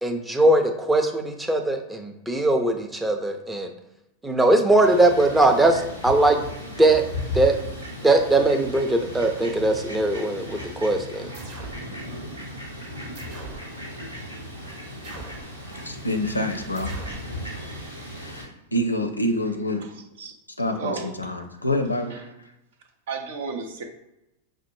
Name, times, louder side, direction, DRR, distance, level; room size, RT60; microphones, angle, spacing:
voice 1, 0.0-3.7 4.2-6.4 6.8-7.0 7.3-7.6 8.0-11.3, right 2 dB, 10° right, 5 dB, 0.5 m, -20 dB
Fowl, 4.8-18.4, left 1 dB, 80° right, 1.2 m, -36 dB
sound 1, 11.3-11.9 13.2-13.7 15.0-15.5 16.8-17.3, right 2 dB, 40° right, 0.9 m, -40 dB
voice 2, 15.8-16.9 18.2-19.9 20.6-22.5, left 1 dB, 85° left, 6 dB, 0.4 m, -27 dB
voice 3, 20.8-21.1 22.1-22.2 23.1-23.8, right 5 dB, 55° right, 5 dB, 0.6 m, -32 dB
5.6 x 2.1 x 3.1 m, 0.90 s
figure-of-eight pair, 90°, 0 cm